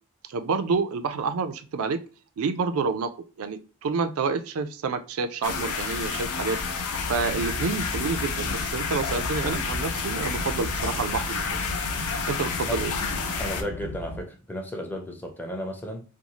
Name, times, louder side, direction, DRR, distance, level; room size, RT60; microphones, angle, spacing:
voice 1, 0.3-2.0 2.4-3.1 3.4-6.6 7.1-11.7 12.3-13.0, right 4 dB, 75° right, 0.4 m, -28 dB
sound 1, 5.4-13.6, left 5 dB, 90° left, 0.5 m, -30 dB
sound 2, 6.9-14.2, left 1 dB, 55° left, 0.7 m, -37 dB
voice 2, 13.4-16.0, equal, 10° left, 0.4 m, -34 dB
2.6 x 2.3 x 2.8 m
head